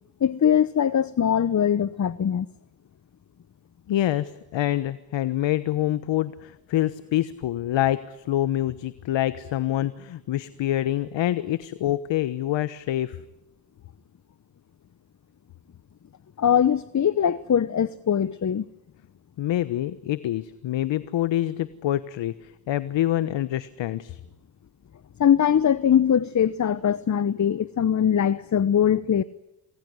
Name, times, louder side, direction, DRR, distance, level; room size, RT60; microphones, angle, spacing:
voice 1, 0.2-2.5 16.4-18.6 25.2-29.2, left 9 dB, 35° left, 1.0 m, -21 dB
voice 2, 3.9-13.2 19.4-24.2, left 13 dB, 65° left, 1.2 m, -26 dB
28.5 x 21.5 x 9.7 m
supercardioid pair, 55°, 48 cm